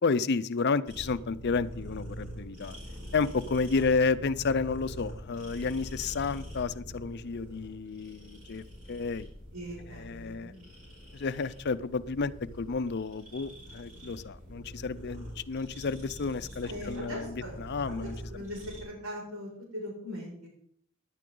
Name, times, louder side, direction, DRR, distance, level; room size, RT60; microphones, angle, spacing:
voice 1, 0.0-2.8 3.1-9.3 9.9-10.5 11.1-18.1, left 4 dB, 55° left, 15 dB, 0.6 m, -31 dB
sound 1, 0.9-18.8, equal, 40° right, 5.5 m, -44 dB
voice 2, 9.5-10.6 16.6-20.5, equal, 80° right, -2 dB, 6.0 m, -41 dB
17.0 x 10.5 x 3.8 m, 0.64 s
head